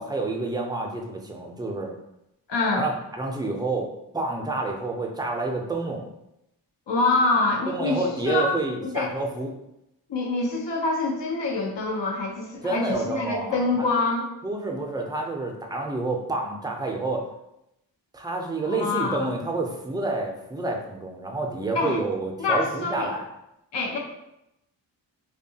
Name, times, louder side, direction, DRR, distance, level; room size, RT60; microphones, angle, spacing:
voice 1, 0.0-1.9 2.7-6.0 7.7-9.5 12.6-13.9 14.4-17.3 18.1-23.2, right 2 dB, 10° right, 1 dB, 0.4 m, -29 dB
voice 2, 2.5-2.9 6.9-8.5 8.8-9.1 10.1-14.3 18.6-19.2 21.7-22.0 22.4-23.1 23.7-24.0, left 3 dB, 80° left, 0 dB, 0.7 m, -25 dB
2.7 x 2.3 x 2.7 m, 0.85 s
cardioid pair, 60°, 43 cm